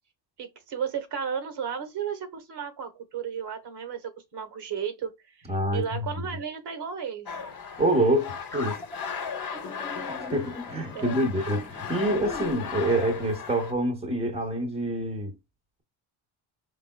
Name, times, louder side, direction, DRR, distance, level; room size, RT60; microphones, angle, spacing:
voice 1, 0.4-7.3 10.9-11.2, right 7 dB, 55° right, 1.1 m, -34 dB
voice 2, 5.5-6.3 7.8-8.8 10.2-15.3, right 1 dB, 15° right, 0.9 m, -26 dB
sound 1, 7.3-13.7, left 6 dB, 45° left, 0.9 m, -36 dB
sound 2, 8.5-13.4, left 2 dB, 5° left, 0.4 m, -42 dB
4.8 x 3.3 x 2.2 m
cardioid pair, 125°, 47 cm